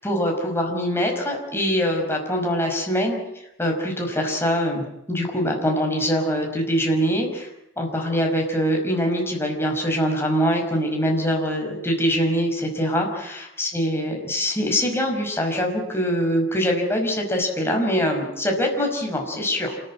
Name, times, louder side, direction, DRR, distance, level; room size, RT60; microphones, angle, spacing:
voice 1, 0.0-3.2 3.6-7.5 7.8-19.8, equal, 10° left, 1 dB, 5.4 m, -23 dB
28.0 x 14.0 x 9.9 m, 0.90 s
head